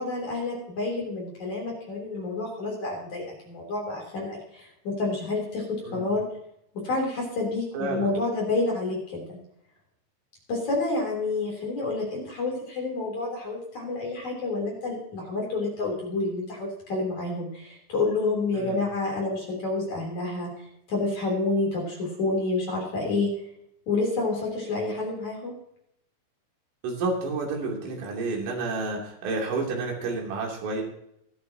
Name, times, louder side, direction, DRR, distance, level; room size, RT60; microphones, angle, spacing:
voice 1, 0.0-6.3 6.7-9.4 10.5-23.4 23.9-25.6, left 3 dB, 40° left, -2 dB, 4.3 m, -29 dB
voice 2, 5.9-6.2 7.7-8.1 18.5-18.8 26.8-30.8, right 3 dB, 80° right, -1 dB, 5.6 m, -30 dB
24.5 x 8.4 x 2.9 m, 0.74 s
omnidirectional pair, 5.7 m